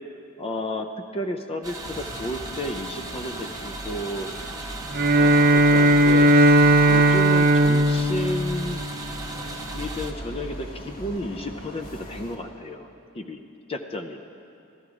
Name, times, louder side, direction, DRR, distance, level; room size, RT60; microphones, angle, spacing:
voice 1, 0.4-0.9 1.1-4.3 5.2-6.4 6.9-8.8 9.7-12.9 13.1-13.4 13.7-14.2, left 1 dB, 25° left, 6 dB, 0.5 m, -32 dB
sound 1, 1.6-10.1, right 3 dB, 15° right, 0.9 m, -37 dB
sound 2, 1.8-12.4, equal, 45° left, 1.7 m, -39 dB
Bowed string instrument, 4.9-9.4, right 1 dB, 45° right, 0.7 m, -18 dB
15.5 x 13.0 x 4.9 m, 2.6 s
head